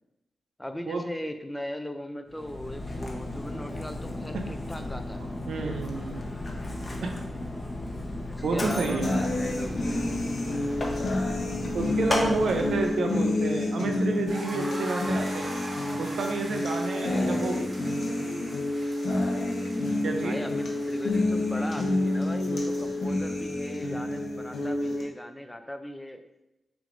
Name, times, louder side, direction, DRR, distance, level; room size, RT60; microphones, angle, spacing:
voice 1, 0.6-5.2 8.2-9.8 16.9-17.4 20.2-26.2, left 1 dB, 10° left, 7 dB, 0.5 m, -38 dB
Mechanisms, 2.3-13.0, left 1 dB, 35° left, 0.9 m, -34 dB
voice 2, 5.5-6.2 7.0-7.1 8.4-9.1 11.7-15.5 16.0-17.6 20.0-20.4, right 3 dB, 85° right, 3 dB, 0.6 m, -29 dB
sound 1, 9.0-25.0, left 2 dB, 75° left, 1.0 m, -29 dB
sound 2, 14.3-23.0, right 1 dB, 50° right, 1.4 m, -42 dB
5.9 x 3.5 x 2.6 m, 0.90 s
cardioid pair, 75°, 0 cm